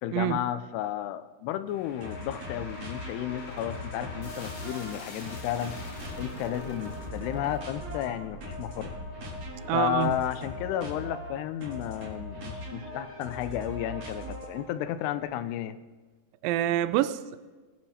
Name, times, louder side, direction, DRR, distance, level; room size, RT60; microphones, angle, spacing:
voice 1, 0.0-5.8 6.2-8.9 9.7-15.8, left 12 dB, 90° left, 11 dB, 2.8 m, -33 dB
sound 1, 1.7-12.9, left 2 dB, 50° left, 4.1 m, -46 dB
sound 2, 2.0-14.8, left 1 dB, 45° right, 4.4 m, -40 dB
voice 2, 9.7-10.1 16.4-17.4, right 13 dB, 80° right, 14 dB, 2.1 m, -26 dB
23.0 x 9.8 x 4.2 m, 1.3 s
omnidirectional pair, 4.6 m